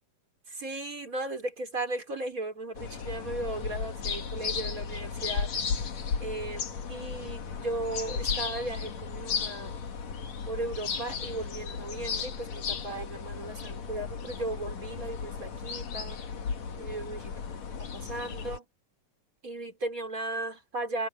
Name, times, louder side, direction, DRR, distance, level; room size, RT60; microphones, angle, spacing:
voice 1, 0.5-5.5 6.2-9.8 10.5-16.2 16.8-17.3 17.8-18.6 19.4-21.1, right 2 dB, 25° right, 4.8 m, -36 dB
sound 1, 2.7-18.6, left 6 dB, 65° left, 3.4 m, -35 dB
omnidirectional pair, 3.4 m